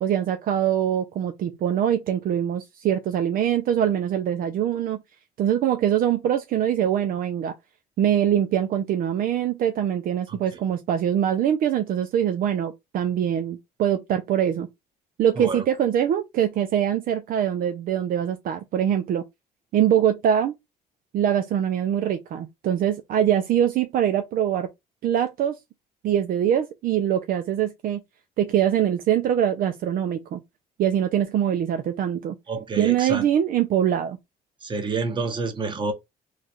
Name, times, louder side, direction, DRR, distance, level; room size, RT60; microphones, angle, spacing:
voice 1, 0.0-5.0 5.4-7.5 8.0-14.7 15.2-19.2 19.7-20.6 21.1-24.7 25.0-25.6 26.0-28.0 28.4-30.4 30.8-32.3 32.8-34.2, right 10 dB, 60° right, 0.5 m, -23 dB
voice 2, 32.5-33.3 34.6-35.9, right 3 dB, 30° right, 1.0 m, -28 dB
3.2 x 2.4 x 4.2 m
cardioid pair, 110°, 17 cm